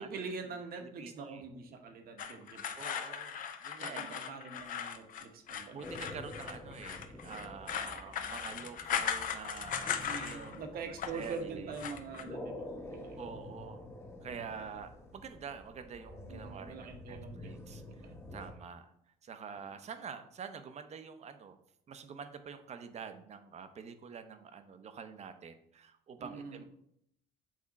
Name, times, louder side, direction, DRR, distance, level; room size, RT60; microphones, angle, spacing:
voice 1, 0.0-2.8 3.8-5.9 9.9-13.2 16.3-18.1 26.2-26.6, right 4 dB, 60° right, 5 dB, 1.1 m, -44 dB
voice 2, 0.5-1.4 2.8-4.2 5.7-11.7 13.2-13.9 14.2-18.9 19.2-21.6 21.9-26.6, right 6 dB, 40° right, 9 dB, 0.7 m, -47 dB
sound 1, 2.2-10.6 10.8-11.3 11.7-12.2, left 8 dB, 55° left, 0.6 m, -38 dB
sound 2, 5.8-18.5, left 1 dB, 15° left, 1.0 m, -48 dB
7.4 x 3.5 x 4.1 m, 0.73 s
cardioid pair, 110°, 17 cm